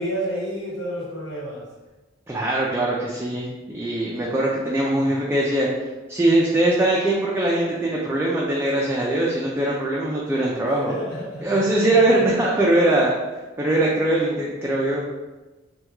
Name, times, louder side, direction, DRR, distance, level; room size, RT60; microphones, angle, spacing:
voice 1, 0.0-1.7 10.8-12.6, right 1 dB, 85° left, -5 dB, 1.0 m, -31 dB
voice 2, 2.3-5.7 6.1-10.9 11.4-13.2 13.6-15.0, right 1 dB, 10° right, -5 dB, 0.3 m, -21 dB
3.4 x 2.2 x 2.9 m, 1.2 s
head